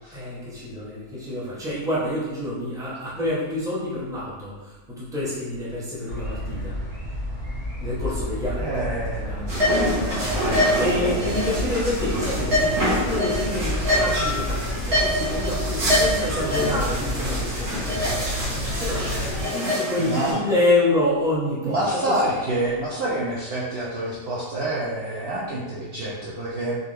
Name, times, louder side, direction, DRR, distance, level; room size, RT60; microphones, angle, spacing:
voice 1, 0.1-6.8 7.8-9.7 10.0-22.3, left 1 dB, 5° right, -8 dB, 0.6 m, -28 dB
sound 1, 6.1-19.4, left 1 dB, 25° right, 1.1 m, -30 dB
voice 2, 8.6-9.7 19.0-19.1 20.0-20.4 21.6-26.7, right 1 dB, 80° right, -6 dB, 0.5 m, -27 dB
sound 2, 9.5-20.3, equal, 65° right, 1.6 m, -25 dB
3.9 x 2.8 x 3.2 m, 1.2 s
omnidirectional pair, 1.8 m